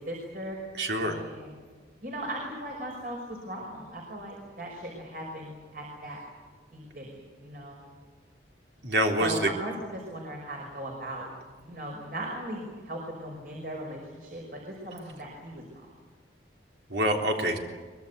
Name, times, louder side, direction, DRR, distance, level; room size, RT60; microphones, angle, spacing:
voice 1, 0.0-0.6 1.0-1.5 2.0-6.2 6.7-7.8 9.2-11.3 11.6-15.9, right 1 dB, 55° right, 0 dB, 5.5 m, -38 dB
voice 2, 0.7-1.2 8.8-9.5 16.9-17.6, right 1 dB, 80° right, 2 dB, 3.6 m, -26 dB
24.0 x 22.0 x 8.2 m, 1.5 s
head